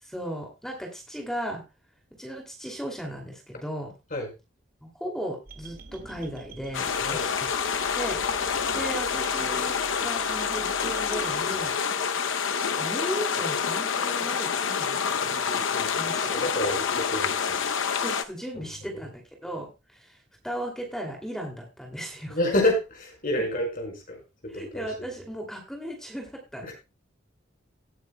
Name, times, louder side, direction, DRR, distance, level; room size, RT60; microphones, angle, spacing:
voice 1, 0.0-1.6 2.2-3.9 4.8-7.2 8.0-8.2 8.7-11.7 12.6-15.4 16.0-16.5 16.8-16.9 18.0-22.4 24.5-26.7, equal, 5° left, 1 dB, 2.6 m, -36 dB
sound 1, 5.5-11.8, right 4 dB, 50° right, 2.0 m, -46 dB
sound 2, 6.7-18.2, left 6 dB, 90° left, 0.7 m, -27 dB
voice 2, 7.0-7.3 8.7-8.8 15.5-15.9 16.3-17.6 18.5-18.6 18.9-19.0 22.3-25.1 26.6-26.7, left 1 dB, 45° left, 2 dB, 5.2 m, -29 dB
18.5 x 9.3 x 2.2 m, 0.27 s
head